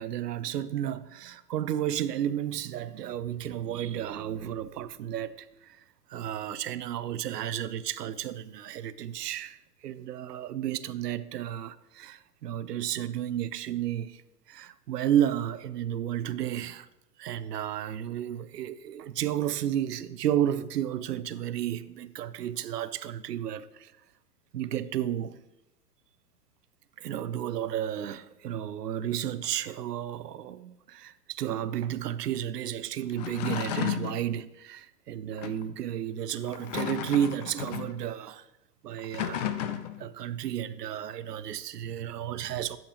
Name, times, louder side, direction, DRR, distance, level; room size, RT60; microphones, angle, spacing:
voice 1, 0.0-5.8 6.1-14.2 14.5-16.9 17.2-23.9 24.5-25.4 27.0-38.5 38.8-42.8, right 10 dB, 75° right, 0.7 m, -32 dB
sound 1, 33.1-34.2 35.4-35.6 36.4-38.0 39.0-40.1, left 10 dB, 30° left, 0.4 m, -33 dB
11.5 x 7.2 x 3.0 m
hypercardioid pair, 110°, 48 cm